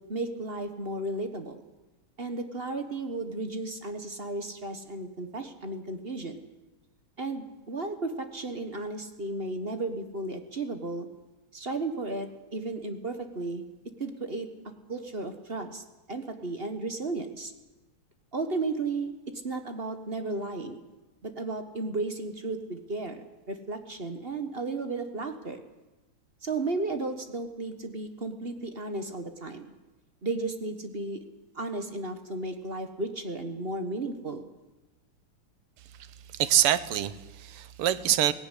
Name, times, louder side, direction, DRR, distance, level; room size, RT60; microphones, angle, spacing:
voice 1, 0.0-1.6 2.2-6.4 7.2-11.1 11.5-13.6 14.0-14.5 14.9-15.8 16.1-17.5 18.3-19.1 19.4-20.8 21.2-23.2 23.5-25.6 26.4-29.7 30.2-31.2 31.5-34.4, right 2 dB, 30° right, 7 dB, 1.3 m, -34 dB
voice 2, 36.3-38.3, right 11 dB, 85° right, 15 dB, 1.9 m, -25 dB
18.5 x 16.5 x 10.0 m, 1.1 s
omnidirectional pair, 2.4 m